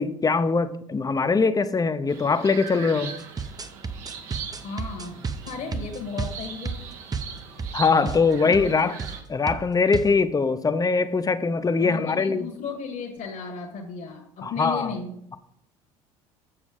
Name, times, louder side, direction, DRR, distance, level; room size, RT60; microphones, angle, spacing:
voice 1, 0.0-3.2 7.7-8.9 9.3-12.5 14.4-14.9, left 4 dB, 20° left, 0.7 m, -22 dB
sound 1, 2.1-9.2, right 6 dB, 70° right, 1.3 m, -40 dB
sound 2, 3.2-7.8 8.0-8.2 8.5-8.7 9.0-9.2 9.5-10.1, right 5 dB, 20° right, 0.8 m, -32 dB
voice 2, 4.6-6.8 8.4-8.6 11.8-15.1, left 5 dB, 50° left, 1.4 m, -35 dB
7.3 x 7.2 x 5.0 m
hypercardioid pair, 65°, 18 cm